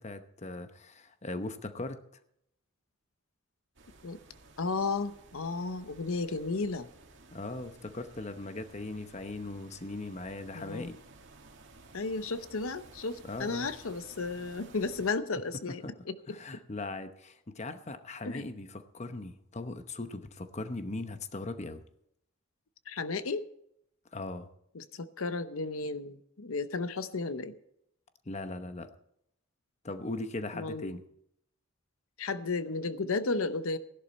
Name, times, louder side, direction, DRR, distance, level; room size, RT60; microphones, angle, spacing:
voice 1, 0.0-2.0 7.3-11.0 13.2-13.7 15.8-15.9 16.3-21.8 24.1-24.5 28.3-28.9 29.8-31.0, left 2 dB, 35° left, 9 dB, 0.9 m, -39 dB
sound 1, 3.7-15.1, right 3 dB, 60° right, 2.3 m, -55 dB
voice 2, 4.6-6.9 10.5-10.9 11.9-16.2 18.2-18.5 22.9-23.5 24.7-27.5 30.5-30.9 32.2-33.8, left 3 dB, 85° left, 12 dB, 0.8 m, -33 dB
16.5 x 11.0 x 4.3 m, 0.75 s
head